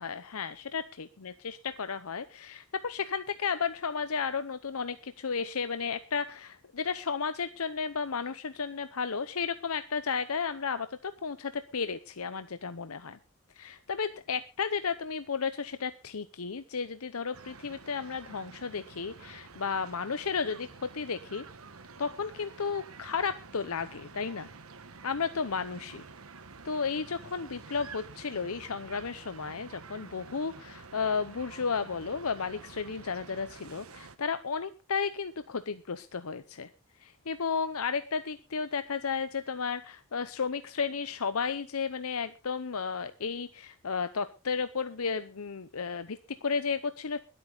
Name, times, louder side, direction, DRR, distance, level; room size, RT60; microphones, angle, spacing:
voice 1, 0.0-13.2 13.6-21.4 22.0-24.5 25.0-26.0 26.6-36.7 37.0-47.2, left 5 dB, 80° left, 11 dB, 0.8 m, -33 dB
sound 1, 17.3-34.2, right 4 dB, 75° right, 1.2 m, -49 dB
21.5 x 8.6 x 4.0 m, 0.31 s
head